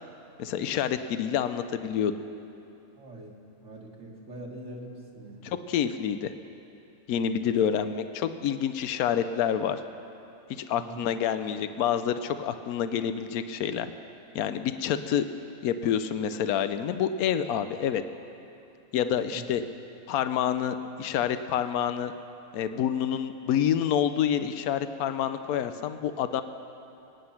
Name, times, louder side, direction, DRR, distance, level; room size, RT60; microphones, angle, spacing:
voice 1, 0.4-2.1 5.4-6.3 7.1-9.8 10.7-13.9 14.3-15.3 15.6-18.0 18.9-19.6 20.1-22.1 22.5-26.4, left 9 dB, 80° left, 10 dB, 1.1 m, -28 dB
voice 2, 3.0-5.5 7.5-7.6 10.7-11.0 19.3-19.4, right 1 dB, 55° right, -2 dB, 2.2 m, -43 dB
24.0 x 9.7 x 5.8 m, 2.8 s
omnidirectional pair, 1.5 m